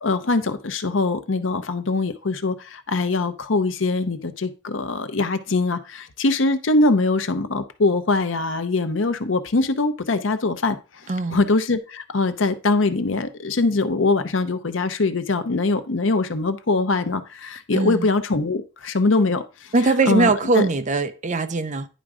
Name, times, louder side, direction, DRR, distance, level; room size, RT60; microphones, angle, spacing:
voice 1, 0.0-10.8 11.3-19.7 20.1-20.7, left 3 dB, 75° left, 0.8 m, -22 dB
voice 2, 11.1-11.4 17.7-18.1 19.7-21.9, right 3 dB, 40° right, 0.6 m, -21 dB
10.0 x 3.6 x 4.9 m
head